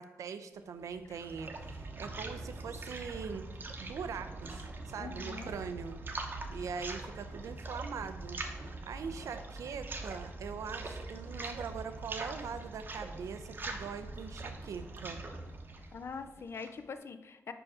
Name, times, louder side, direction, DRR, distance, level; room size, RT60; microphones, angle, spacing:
voice 1, 0.0-3.5 3.8-6.0 6.5-15.2, right 6 dB, 85° right, 10 dB, 0.5 m, -42 dB
sound 1, 0.8-16.8, right 2 dB, 40° right, 0.8 m, -43 dB
voice 2, 5.0-5.5 15.9-17.5, left 5 dB, 55° left, 9 dB, 0.4 m, -43 dB
5.0 x 4.8 x 4.8 m, 1.1 s
wide cardioid pair, 110°, 5 cm